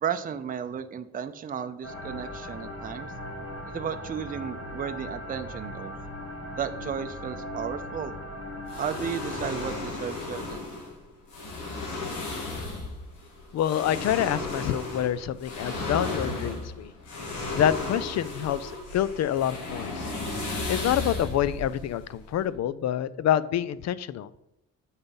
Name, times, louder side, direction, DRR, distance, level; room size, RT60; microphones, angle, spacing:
voice 1, 0.0-3.1 3.7-5.9 6.6-8.1 8.8-10.6, right 7 dB, 30° right, 8 dB, 0.5 m, -34 dB
sound 1, 1.8-9.8, left 1 dB, 45° left, 2.0 m, -39 dB
sound 2, 8.7-22.6, left 3 dB, 80° left, 1.8 m, -34 dB
voice 2, 13.5-16.9 17.6-20.1 20.7-24.3, left 10 dB, 60° left, 18 dB, 0.5 m, -27 dB
8.5 x 4.1 x 5.4 m, 0.84 s
cardioid pair, 90°, 30 cm